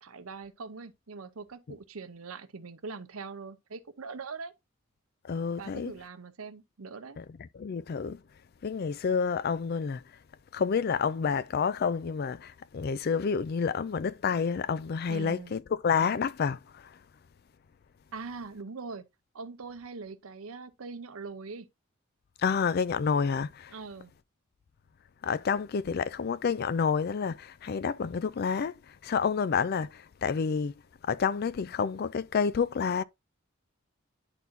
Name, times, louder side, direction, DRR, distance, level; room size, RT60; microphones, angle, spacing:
voice 1, 0.0-4.5 5.6-7.2 15.1-15.6 18.1-19.0 19.3-21.7 23.7-24.1, right 4 dB, 90° right, 0.8 m, -42 dB
voice 2, 5.2-5.9 7.2-7.3 7.5-8.2 8.6-10.0 10.5-17.0 22.4-23.7 25.2-30.7 31.0-33.0, left 6 dB, 50° left, 0.4 m, -29 dB
11.0 x 4.1 x 2.6 m
head